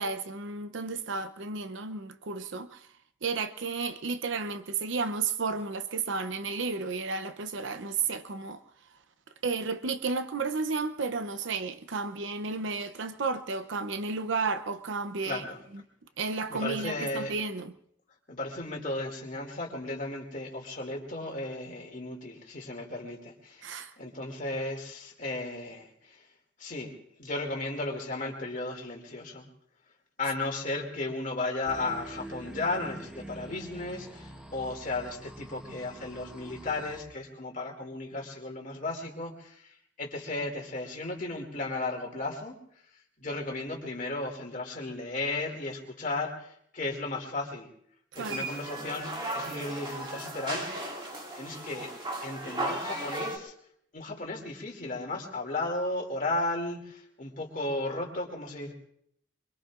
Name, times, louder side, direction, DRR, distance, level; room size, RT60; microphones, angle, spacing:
voice 1, 0.0-2.9 3.2-8.6 9.4-15.4 16.2-17.7 23.6-23.9 48.1-48.5, right 4 dB, 80° right, 0.7 m, -32 dB
voice 2, 15.2-15.6 16.5-17.3 18.3-26.2 26.6-26.9 27.2-29.5 30.2-42.6 43.2-47.7 48.1-50.9 51.3-51.9 52.2-53.5 53.9-58.7, left 2 dB, 45° left, 2.5 m, -35 dB
sound 1, 31.6-37.0, right 1 dB, 5° right, 1.1 m, -45 dB
sound 2, 48.2-53.4, right 1 dB, 25° right, 2.2 m, -36 dB
24.5 x 23.0 x 2.5 m
head